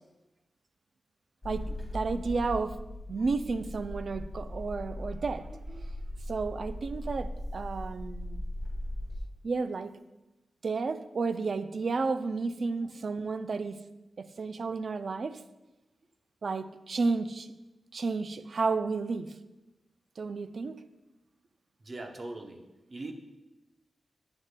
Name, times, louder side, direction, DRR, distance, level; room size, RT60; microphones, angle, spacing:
sound 1, 1.4-9.2, left 1 dB, 10° left, 2.3 m, -39 dB
voice 1, 1.4-2.8 3.1-5.9 6.3-8.4 9.4-9.9 10.6-13.8 14.2-15.4 16.4-17.5 17.9-19.3 20.2-20.8, right 4 dB, 55° right, 12 dB, 0.3 m, -32 dB
voice 2, 21.8-22.6 22.9-23.1, right 2 dB, 40° right, 3 dB, 0.7 m, -41 dB
9.0 x 6.4 x 2.2 m, 1.0 s
wide cardioid pair, 125°, 0 cm